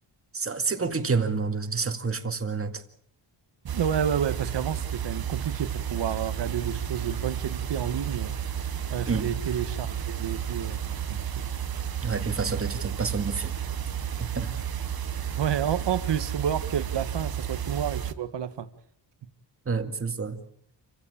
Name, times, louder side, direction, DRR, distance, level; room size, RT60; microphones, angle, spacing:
voice 1, 0.3-2.8 9.1-9.3 12.0-13.5 14.2-14.5 19.7-20.4, right 4 dB, 30° right, 2.1 m, -29 dB
voice 2, 3.6-8.5 8.9-10.8 11.1-11.4 15.4-18.7, right 9 dB, 70° right, 1.4 m, -30 dB
sound 1, 3.7-18.1, right 9 dB, 55° right, 1.3 m, -32 dB
28.5 x 16.0 x 8.7 m
wide cardioid pair, 160°, 44 cm